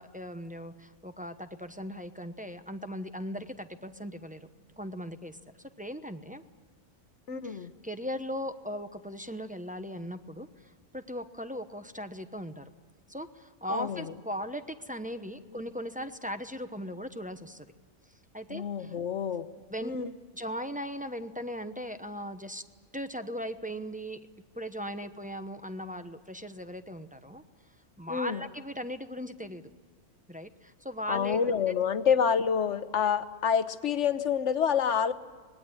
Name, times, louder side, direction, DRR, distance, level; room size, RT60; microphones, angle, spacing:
voice 1, 0.0-4.5 4.8-6.4 7.4-12.7 13.1-17.7 18.3-19.0 19.7-19.9 20.3-22.6 22.9-24.2 24.5-27.4 28.0-29.6 30.3-31.4, equal, 5° right, 7 dB, 0.8 m, -38 dB
voice 2, 7.3-7.7 13.7-14.1 18.5-19.5 19.8-20.1 28.1-28.4 31.1-35.1, left 7 dB, 60° left, 11 dB, 1.3 m, -28 dB
25.5 x 20.5 x 9.8 m, 1.5 s
omnidirectional pair, 1.4 m